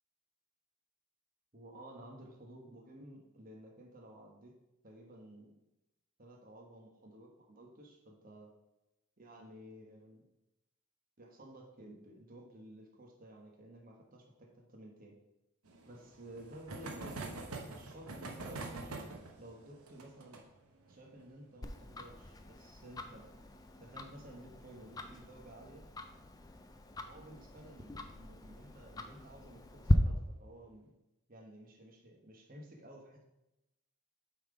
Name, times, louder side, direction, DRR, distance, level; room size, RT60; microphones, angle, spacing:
voice 1, 1.5-4.5 4.8-5.5 6.2-8.5 9.2-10.2 11.2-15.2 15.9-20.4 20.9-23.3 23.8-25.9 27.0-30.9 31.3-33.2, right 1 dB, 40° right, 0 dB, 1.1 m, -53 dB
sound 1, 15.6-24.9 25.1-25.2 25.5-25.6 25.8-25.9 27.3-27.6 28.3-28.7, right 3 dB, 80° right, 1.0 m, -47 dB
Tick-tock, 21.6-29.9, left 1 dB, 15° left, 0.3 m, -38 dB
7.3 x 3.7 x 4.9 m, 0.91 s
head